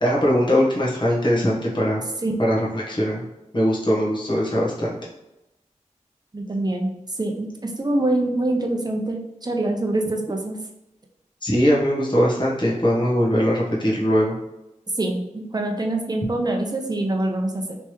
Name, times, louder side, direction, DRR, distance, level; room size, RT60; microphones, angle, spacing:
voice 1, 0.0-2.0 2.4-3.2 3.5-4.9 11.4-14.3, equal, 35° left, -5 dB, 1.2 m, -21 dB
voice 2, 6.3-6.9 7.2-10.6 15.0-17.8, right 2 dB, 30° right, 2 dB, 0.7 m, -25 dB
3.4 x 3.1 x 3.0 m, 0.92 s
cardioid pair, 45°, 13 cm